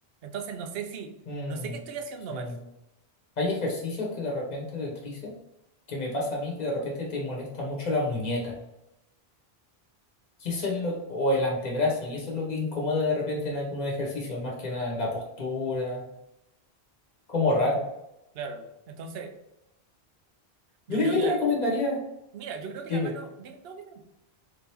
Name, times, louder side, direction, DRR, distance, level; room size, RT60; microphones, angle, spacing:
voice 1, 0.2-1.1 1.5-2.5 18.3-19.4 20.9-21.5 22.3-24.0, right 6 dB, 70° right, 6 dB, 0.8 m, -38 dB
voice 2, 1.3-1.8 2.3-2.5 3.4-5.3 5.9-8.5 10.4-16.0 17.3-17.8 20.9-22.0 22.9-23.1, left 2 dB, 45° left, -2 dB, 1.0 m, -28 dB
3.5 x 2.9 x 3.3 m, 0.87 s
omnidirectional pair, 1.1 m